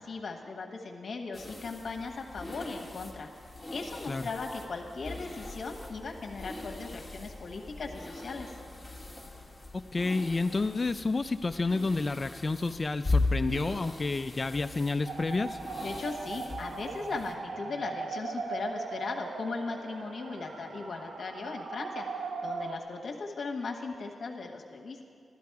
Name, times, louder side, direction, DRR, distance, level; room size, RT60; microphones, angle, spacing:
voice 1, 0.0-3.3 3.7-8.5 15.8-25.0, left 4 dB, 60° left, 1 dB, 1.2 m, -38 dB
sound 1, 1.3-17.3, left 2 dB, 5° left, 1.5 m, -38 dB
voice 2, 9.7-15.6, left 3 dB, 30° left, 9 dB, 0.3 m, -30 dB
sound 2, 15.1-22.8, right 4 dB, 80° right, 0.9 m, -39 dB
15.5 x 12.5 x 4.7 m, 2.3 s
wide cardioid pair, 105°, 0 cm